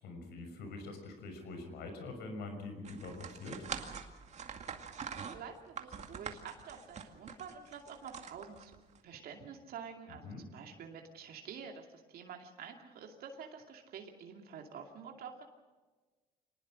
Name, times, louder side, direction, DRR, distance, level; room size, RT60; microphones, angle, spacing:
voice 1, 0.0-3.7 10.2-10.4, left 3 dB, 75° left, 6 dB, 6.0 m, -44 dB
sound 1, 2.8-9.0, right 6 dB, 40° right, 2.2 m, -45 dB
voice 2, 5.3-8.7 9.0-15.4, right 6 dB, 65° right, 2 dB, 2.6 m, -48 dB
25.5 x 19.5 x 6.4 m, 1.3 s
cardioid pair, 110°, 17 cm